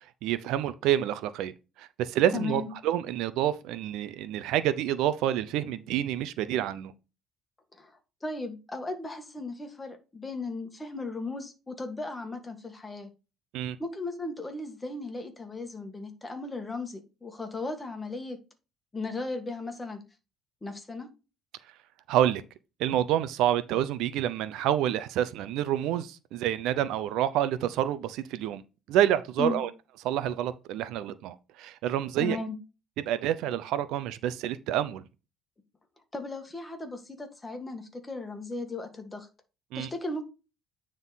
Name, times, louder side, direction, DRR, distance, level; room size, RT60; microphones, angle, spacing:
voice 1, 0.2-1.5 1.8-6.9 13.5-13.8 22.1-22.4 22.8-28.6 28.9-29.7 30.0-32.4 33.1-35.0 39.7-39.9, right 11 dB, 75° right, 0.6 m, -28 dB
voice 2, 2.3-2.7 7.7-7.9 8.2-13.1 13.8-18.4 18.9-20.0 20.6-21.1 29.4-29.6 32.2-32.5 36.1-39.3 39.7-40.2, left 3 dB, 15° left, 1.5 m, -36 dB
9.5 x 3.7 x 4.0 m
cardioid pair, 135°, 0 cm